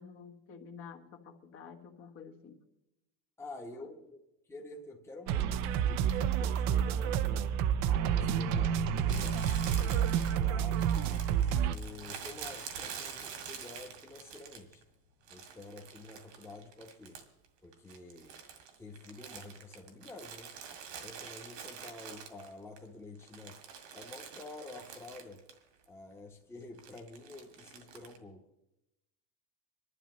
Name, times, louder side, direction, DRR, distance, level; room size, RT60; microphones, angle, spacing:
voice 1, 0.0-2.6 3.7-3.9, left 6 dB, 50° left, 3 dB, 1.5 m, -50 dB
voice 2, 3.4-4.2 4.5-7.6 8.1-11.0 11.4-14.8 15.3-17.2 17.6-18.4 18.8-20.5 21.0-23.6 23.9-25.4 25.9-28.4, left 2 dB, 10° left, 0 dB, 1.1 m, -49 dB
sound 1, 5.3-11.8, right 9 dB, 65° right, 0.7 m, -29 dB
Explosion, 8.1-14.1 14.4-14.5, left 8 dB, 90° left, 1.1 m, -45 dB
Crumpling crinkling, 9.1-14.8 15.3-17.5 17.7-22.8 23.2-25.6 25.8-25.9 26.8-28.2, right 7 dB, 85° right, 2.1 m, -46 dB
26.5 x 11.5 x 3.1 m, 0.90 s
cardioid pair, 150°, 30 cm